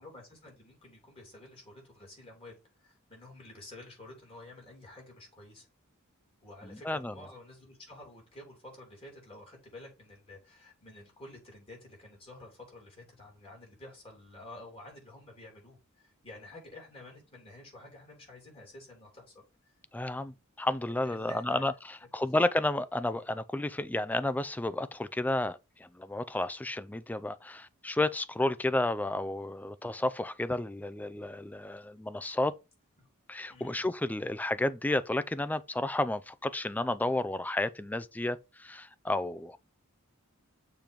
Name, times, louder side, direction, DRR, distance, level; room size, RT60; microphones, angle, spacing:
voice 1, 0.0-5.7 6.4-19.7 21.0-21.7 22.1-22.4 33.5-33.8, left 1 dB, 25° left, 3.0 m, -50 dB
voice 2, 6.6-7.1 19.9-32.5 33.3-39.6, left 1 dB, 10° left, 0.3 m, -32 dB
6.8 x 3.0 x 5.2 m
head